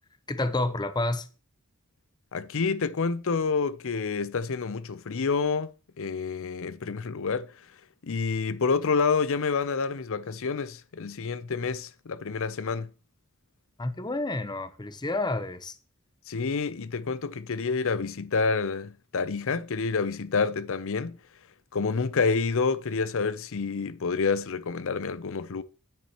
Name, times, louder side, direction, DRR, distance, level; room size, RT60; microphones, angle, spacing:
voice 1, 0.3-1.3 13.8-15.7, left 2 dB, 20° left, 0.7 m, -29 dB
voice 2, 2.3-5.7 6.0-7.5 8.0-12.9 16.3-21.2 21.7-25.6, left 4 dB, 65° left, 0.6 m, -28 dB
9.4 x 8.7 x 3.0 m
head